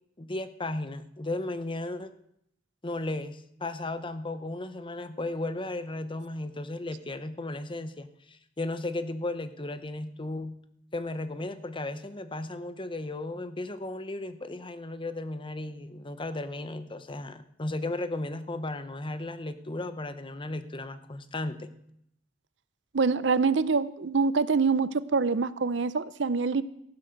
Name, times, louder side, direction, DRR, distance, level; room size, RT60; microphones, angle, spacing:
voice 1, 0.2-2.1 2.8-10.6 10.9-21.7, left 2 dB, 30° left, 11 dB, 0.9 m, -35 dB
voice 2, 22.9-26.6, right 4 dB, 75° right, 16 dB, 0.7 m, -25 dB
15.0 x 11.5 x 6.6 m, 0.74 s
head